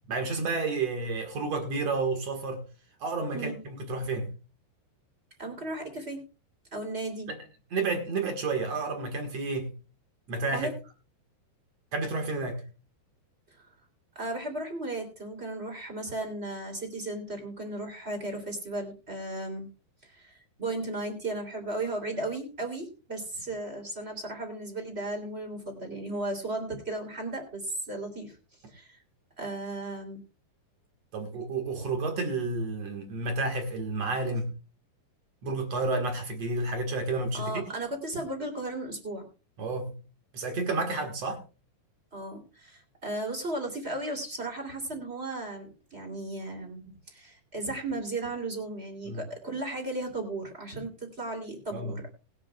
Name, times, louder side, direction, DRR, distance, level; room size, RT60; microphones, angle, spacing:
voice 1, 0.1-2.6 3.0-4.3 7.3-7.4 7.7-9.7 10.3-10.7 11.9-12.6 31.1-34.5 35.4-37.5 39.6-39.9 40.3-41.4 49.1-49.2 51.7-52.0, right 3 dB, 50° right, 2.0 m, -30 dB
voice 2, 5.4-6.3 6.7-7.3 10.5-10.7 14.1-19.7 20.0-28.4 28.7-29.0 29.4-30.2 37.3-39.2 42.1-52.1, right 2 dB, 15° right, 2.6 m, -35 dB
20.0 x 10.0 x 2.4 m
omnidirectional pair, 5.1 m